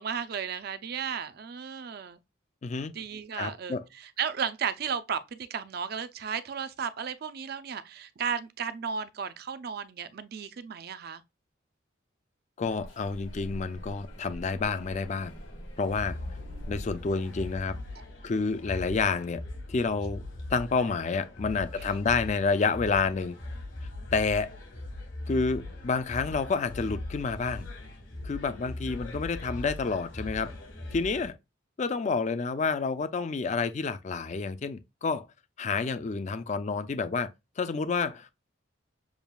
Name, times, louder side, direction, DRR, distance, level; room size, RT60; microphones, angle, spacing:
voice 1, 0.0-2.2 2.9-11.2 18.0-18.1 21.8-21.9, right 7 dB, 50° right, 0.4 m, -34 dB
voice 2, 2.6-2.9 3.3-3.8 12.6-15.3 15.8-16.2 16.7-17.8 18.2-19.4 19.7-20.2 20.5-23.4 24.1-24.5 25.3-27.7 28.2-30.5 30.9-31.4 31.8-35.3 35.6-37.3 37.6-38.3, left 4 dB, 35° left, 0.4 m, -29 dB
sound 1, 12.6-17.6, equal, 90° left, 1.8 m, -45 dB
sound 2, 15.8-31.3, left 2 dB, 70° left, 1.4 m, -40 dB
7.0 x 2.3 x 2.2 m
head